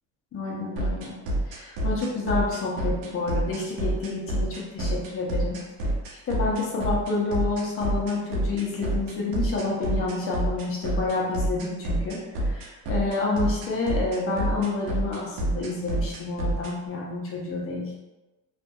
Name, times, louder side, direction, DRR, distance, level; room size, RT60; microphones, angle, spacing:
voice 1, 0.3-1.1 1.5-5.6 6.3-12.2 12.4-17.8, left 3 dB, 40° left, -3 dB, 0.8 m, -29 dB
sound 1, 0.8-16.7, right 1 dB, 80° right, 0.7 m, -27 dB
2.6 x 2.6 x 2.2 m, 1.1 s
cardioid pair, 115°, 33 cm